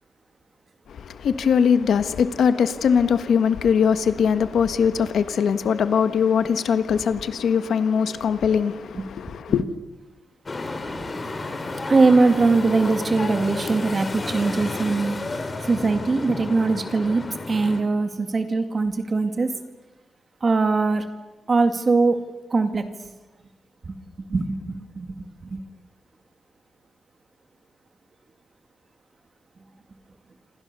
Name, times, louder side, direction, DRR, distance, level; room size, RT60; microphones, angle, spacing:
voice 1, 0.9-9.6, left 7 dB, 65° left, 1.4 m, -21 dB
sound 1, 10.5-17.8, left 3 dB, 25° left, 2.6 m, -31 dB
voice 2, 11.9-15.2 15.6-19.5 20.4-21.0 21.5-22.2 22.5-22.9 23.9-24.0 24.3-25.6, right 3 dB, 30° right, 2.1 m, -21 dB
27.5 x 27.0 x 6.9 m
wide cardioid pair, 175°, 0 cm